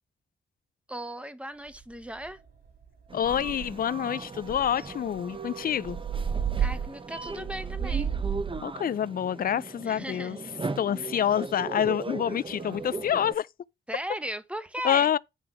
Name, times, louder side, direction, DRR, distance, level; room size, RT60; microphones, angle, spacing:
voice 1, 0.9-2.4 6.6-8.2 9.8-10.4 13.9-15.1, right 1 dB, 5° right, 1.1 m, -36 dB
sound 1, 1.7-1.8 2.2-2.5 2.8-2.9 3.2-3.9 4.4-8.6, right 7 dB, 50° right, 3.3 m, -32 dB
voice 2, 3.1-6.0 8.6-10.4 10.8-13.5 14.8-15.2, left 9 dB, 45° left, 0.4 m, -27 dB
sound 2, 3.1-13.3, right 3 dB, 25° right, 0.8 m, -38 dB
sound 3, 3.2-12.8, right 7 dB, 85° right, 4.3 m, -54 dB
8.8 x 3.4 x 5.6 m
supercardioid pair, 50°, 21 cm